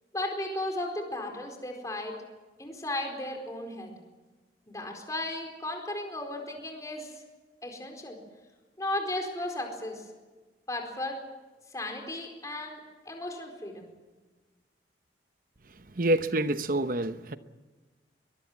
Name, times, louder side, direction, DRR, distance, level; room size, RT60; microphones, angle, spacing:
voice 1, 0.1-2.1 2.6-3.9 4.7-7.2 7.6-8.2 8.8-10.1 10.7-11.2 11.7-12.8 13.1-13.9, left 1 dB, 20° left, 4.5 m, -35 dB
voice 2, 16.0-17.4, right 1 dB, 50° right, 1.0 m, -27 dB
22.5 x 22.0 x 7.5 m
head